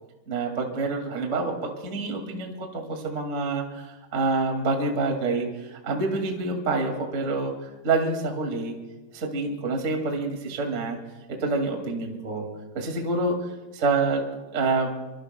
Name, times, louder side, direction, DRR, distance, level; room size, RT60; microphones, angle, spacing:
voice 1, 0.3-8.7 9.1-11.0 11.3-12.5 12.7-13.3 13.7-14.9, right 3 dB, 40° right, 2 dB, 1.0 m, -27 dB
24.5 x 22.5 x 2.2 m, 1.1 s
omnidirectional pair, 5.1 m